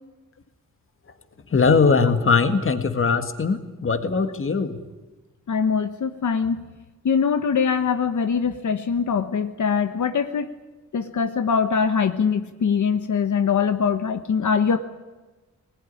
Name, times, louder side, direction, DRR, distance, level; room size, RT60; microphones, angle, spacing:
voice 1, 1.5-4.8, left 4 dB, 45° left, 9 dB, 1.8 m, -20 dB
voice 2, 5.5-6.6 7.0-10.5 10.9-14.8, left 6 dB, 80° left, 8 dB, 1.2 m, -22 dB
21.0 x 19.5 x 10.0 m, 1.2 s
wide cardioid pair, 175°, 29 cm